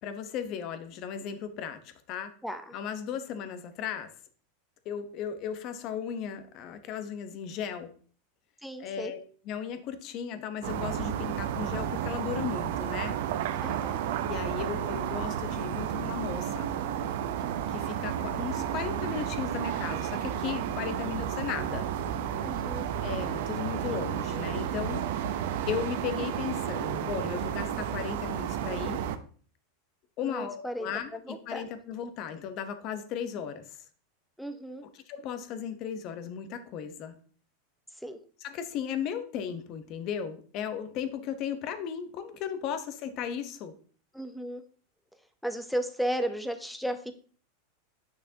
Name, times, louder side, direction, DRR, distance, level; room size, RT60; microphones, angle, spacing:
voice 1, 0.0-2.3 2.7-4.1 4.8-7.9 8.8-9.2 9.4-13.2 14.2-17.1 17.4-21.9 23.0-25.0 25.7-29.0 30.2-33.8 34.9-37.1 38.4-43.7, left 8 dB, 40° left, 9 dB, 1.0 m, -36 dB
voice 2, 2.4-2.7 8.6-9.1 13.6-14.0 22.4-22.9 30.2-31.6 34.4-34.8 38.0-38.2 44.1-44.6 45.4-47.1, equal, ahead, 8 dB, 0.7 m, -34 dB
sound 1, 10.6-29.2, right 9 dB, 65° right, 0.7 m, -32 dB
8.8 x 6.1 x 2.8 m, 0.43 s
supercardioid pair, 145°, 0 cm